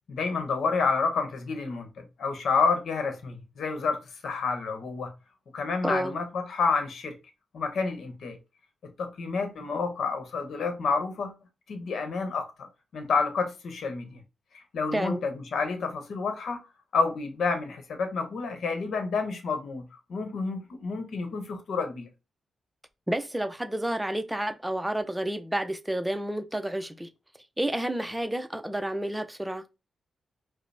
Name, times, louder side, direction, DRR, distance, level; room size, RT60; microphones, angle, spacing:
voice 1, 0.1-5.1 5.5-7.1 7.5-8.4 8.8-11.3 11.7-12.7 12.9-14.2 14.5-16.6 16.9-19.8 20.1-22.1, left 4 dB, 75° left, 0.9 m, -29 dB
voice 2, 5.8-6.1 14.9-15.2 23.1-27.1 27.6-29.6, right 1 dB, 10° right, 0.5 m, -30 dB
4.9 x 2.0 x 3.3 m
cardioid pair, 70°, 0 cm